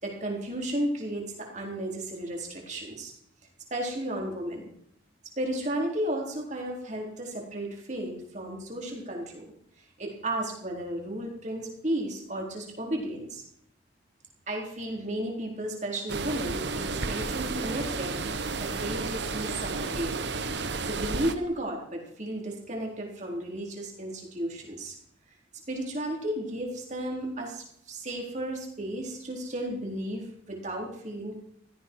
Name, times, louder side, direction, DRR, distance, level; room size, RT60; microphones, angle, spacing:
voice 1, 0.0-3.1 3.7-4.7 5.4-9.5 10.0-13.4 14.5-20.3 20.8-24.9 25.7-31.4, right 1 dB, 40° right, 0 dB, 4.0 m, -34 dB
sound 1, 16.1-21.3, right 3 dB, 65° right, 1.1 m, -32 dB
17.0 x 14.0 x 4.7 m, 0.69 s
head